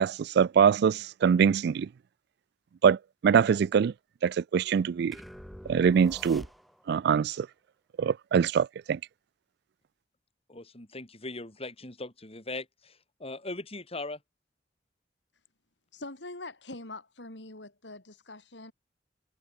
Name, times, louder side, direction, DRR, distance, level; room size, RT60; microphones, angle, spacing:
voice 1, 0.0-1.9 2.8-3.9 4.2-5.2 5.7-6.4 6.9-7.5 8.0-9.0, right 7 dB, 65° right, 0.3 m, -24 dB
sound 1, 5.1-7.0, equal, ahead, 3.4 m, -46 dB
voice 2, 10.5-14.2, left 2 dB, 35° left, 4.2 m, -40 dB
voice 3, 15.9-18.7, left 2 dB, 80° left, 4.7 m, -43 dB
head